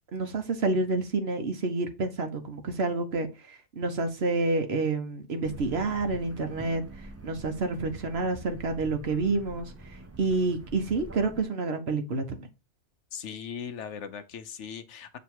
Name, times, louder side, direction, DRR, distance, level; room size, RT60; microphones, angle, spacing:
voice 1, 0.1-6.8 7.2-9.7 10.2-12.5, right 3 dB, 55° right, 1.2 m, -28 dB
sound 1, 5.4-11.4, right 2 dB, 25° right, 0.3 m, -45 dB
voice 2, 13.1-15.2, left 7 dB, 70° left, 1.0 m, -39 dB
7.2 x 2.9 x 4.5 m
omnidirectional pair, 1.3 m